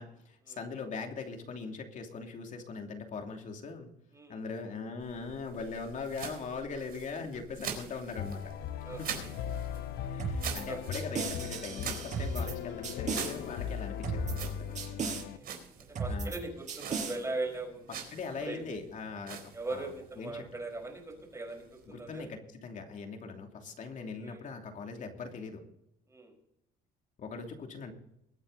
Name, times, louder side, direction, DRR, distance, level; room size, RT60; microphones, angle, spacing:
voice 1, 0.0-3.9 4.3-8.5 8.8-9.3 10.1-14.9 16.1-16.4 17.9-19.9 20.2-20.4 21.9-25.6 27.2-27.9, left 4 dB, 50° left, 3 dB, 2.8 m, -41 dB
sound 1, 5.0-22.3, right 7 dB, 60° right, 4.2 m, -46 dB
sound 2, 8.2-15.4, left 9 dB, 75° left, 1.0 m, -39 dB
voice 2, 8.8-9.3 9.7-9.9 10.7-10.8 15.1-15.5 15.9-17.9 18.4-18.8 19.5-22.3 24.2-24.4 26.1-26.3, right 2 dB, 15° right, 3 dB, 4.9 m, -40 dB
sound 3, 10.2-10.6 10.9-12.5 12.8-13.3 14.0-14.5 14.8-15.2 16.0-16.4 16.7-17.2, right 4 dB, 45° right, 6.0 m, -35 dB
22.0 x 9.0 x 4.1 m, 0.80 s
cardioid pair, 110°, 17 cm